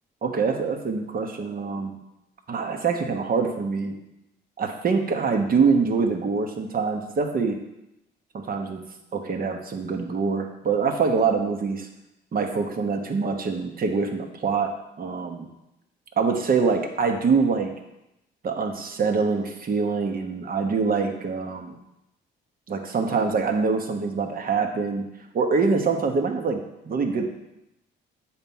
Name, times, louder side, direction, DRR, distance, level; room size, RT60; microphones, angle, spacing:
voice 1, 0.2-1.9 2.5-3.9 4.6-7.6 8.3-8.8 9.1-11.9 12.3-15.5 16.2-17.7 18.4-21.7 22.7-25.0 25.3-27.2, right 5 dB, 45° right, 4 dB, 1.2 m, -24 dB
7.8 x 4.5 x 5.5 m, 0.89 s
cardioid pair, 90°, 20 cm